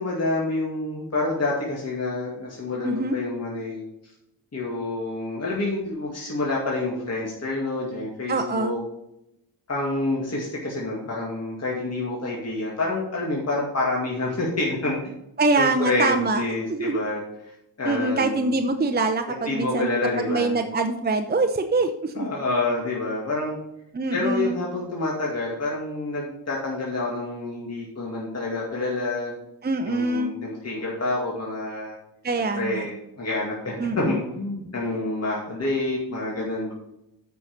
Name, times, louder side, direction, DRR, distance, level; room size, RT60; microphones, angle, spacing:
voice 1, 0.0-3.8 4.5-8.8 9.7-15.0 15.5-17.2 17.8-18.5 19.3-20.6 22.1-23.6 24.1-29.3 29.8-32.0 32.6-36.7, left 2 dB, 40° left, -3 dB, 2.2 m, -28 dB
voice 2, 2.8-3.2 8.3-8.7 15.4-16.4 16.7-17.0 17.8-22.3 23.9-24.6 29.6-30.3 32.2-32.9 33.8-34.2 34.8-34.9, right 3 dB, 25° right, 6 dB, 0.7 m, -24 dB
9.3 x 5.8 x 5.3 m, 0.83 s
wide cardioid pair, 115°, 41 cm